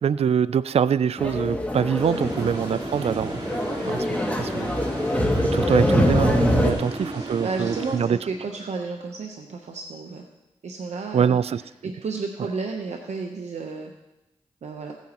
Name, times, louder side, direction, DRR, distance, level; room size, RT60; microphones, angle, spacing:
voice 1, 0.0-3.4 3.9-4.1 4.4-4.7 5.5-8.2 11.1-11.6, right 7 dB, 65° right, 16 dB, 0.4 m, -24 dB
sound 1, 1.2-6.7, left 1 dB, 15° left, 2.2 m, -24 dB
sound 2, 1.9-8.6, right 1 dB, 40° right, 3.5 m, -34 dB
voice 2, 7.1-10.2 10.6-13.9 14.6-14.9, right 4 dB, 80° right, 2 dB, 0.9 m, -32 dB
16.5 x 9.2 x 3.0 m, 0.98 s
cardioid pair, 45°, 11 cm